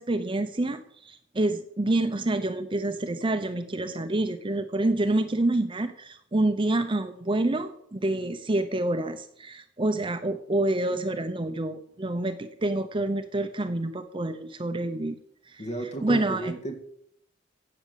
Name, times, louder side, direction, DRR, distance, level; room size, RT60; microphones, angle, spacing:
voice 1, 0.0-15.2 15.5-15.6 16.0-16.5, right 2 dB, 25° right, 9 dB, 0.7 m, -27 dB
voice 2, 15.6-16.7, right 1 dB, 35° left, 4 dB, 2.0 m, -33 dB
15.5 x 6.1 x 8.4 m, 0.69 s
head